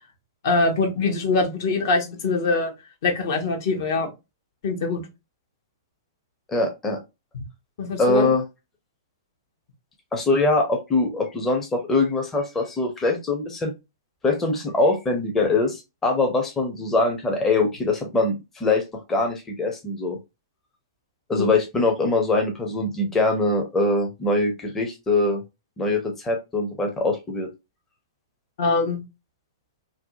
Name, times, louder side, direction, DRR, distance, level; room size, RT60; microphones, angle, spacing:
voice 1, 0.4-2.7 3.0-4.1 4.6-5.0 7.8-8.3 21.4-21.5 28.6-29.0, left 3 dB, 55° left, 0.8 m, -23 dB
voice 2, 6.5-7.0 8.0-8.4 10.1-13.7 14.2-20.2 21.3-25.4 25.8-27.5, left 2 dB, 15° left, 0.6 m, -23 dB
2.6 x 2.2 x 2.6 m
figure-of-eight pair, 110°, 2 cm